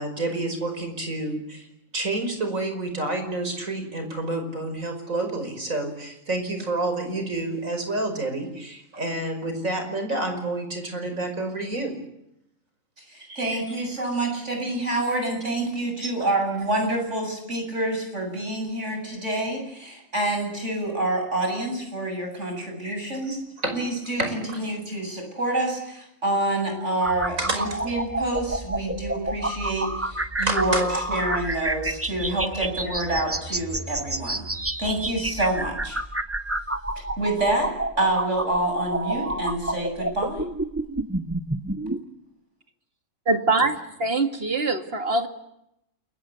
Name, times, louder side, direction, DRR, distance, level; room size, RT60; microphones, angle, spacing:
voice 1, 0.0-1.7 1.9-11.9 13.2-13.5 16.0-16.3 22.8-23.0 23.2-23.7 24.2-24.6 27.4-27.6 30.4-30.8, right 2 dB, 85° right, 6 dB, 5.8 m, -29 dB
voice 2, 13.0-23.4 23.7-34.5 34.8-36.0 37.2-37.7 38.0-40.4, right 1 dB, 65° right, 3 dB, 8.4 m, -27 dB
sound 1, 27.0-42.0, right 1 dB, 10° right, 0.9 m, -29 dB
voice 3, 43.3-45.3, right 3 dB, 50° right, 6 dB, 2.4 m, -23 dB
28.5 x 22.0 x 8.3 m, 0.81 s
omnidirectional pair, 1.3 m